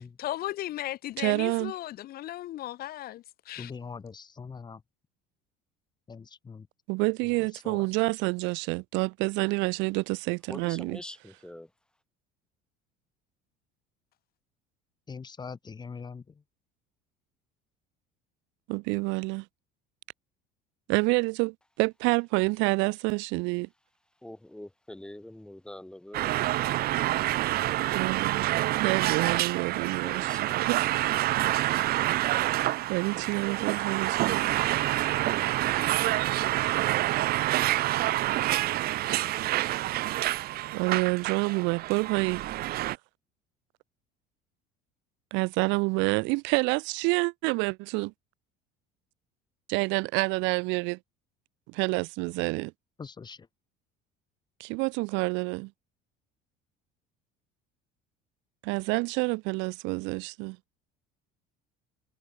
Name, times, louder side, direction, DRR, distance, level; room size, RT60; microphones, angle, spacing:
voice 1, 0.0-3.7, left 14 dB, 55° left, 1.3 m, -36 dB
voice 2, 1.2-1.7 6.9-11.0 18.7-19.5 20.9-23.7 27.9-28.5 28.8-30.9 32.9-34.5 40.7-42.4 45.3-48.1 49.7-51.0 51.7-52.7 54.6-55.7 58.6-60.6, right 26 dB, 75° right, 1.1 m, -28 dB
voice 3, 3.6-4.8 6.1-6.7 7.6-7.8 15.1-16.2 53.0-53.4, left 5 dB, 20° left, 1.7 m, -42 dB
voice 4, 10.5-11.7 24.2-26.9 27.7-27.8 29.7-30.4, left 1 dB, 5° left, 3.0 m, -45 dB
sound 1, 26.1-43.0, right 16 dB, 55° right, 0.8 m, -27 dB
cardioid pair, 120°, 19 cm